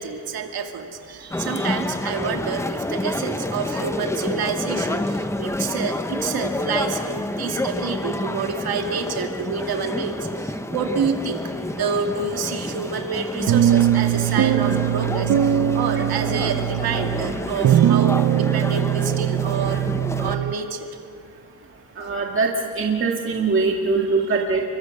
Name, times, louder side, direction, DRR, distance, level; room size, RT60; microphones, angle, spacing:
voice 1, 0.0-19.9 20.2-21.0, right 5 dB, 75° right, 3 dB, 2.4 m, -28 dB
sound 1, 1.3-20.4, left 1 dB, 5° left, 0.7 m, -29 dB
sound 2, 13.5-20.5, right 11 dB, 55° right, 0.7 m, -21 dB
voice 2, 22.0-24.6, right 4 dB, 35° right, 0 dB, 1.9 m, -22 dB
29.0 x 24.0 x 6.7 m, 2.3 s
wide cardioid pair, 160°, 37 cm